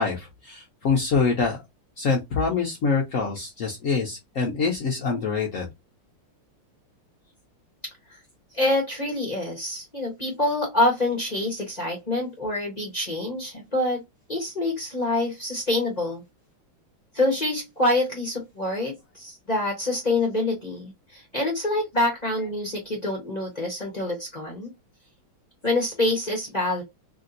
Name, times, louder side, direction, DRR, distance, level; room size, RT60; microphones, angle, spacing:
voice 1, 0.0-1.6 2.0-5.7, left 4 dB, 75° left, 0.7 m, -25 dB
voice 2, 8.5-14.0 14.3-16.2 17.1-24.7 25.6-26.8, left 2 dB, 30° left, 0.7 m, -26 dB
3.3 x 2.7 x 2.5 m
omnidirectional pair, 2.3 m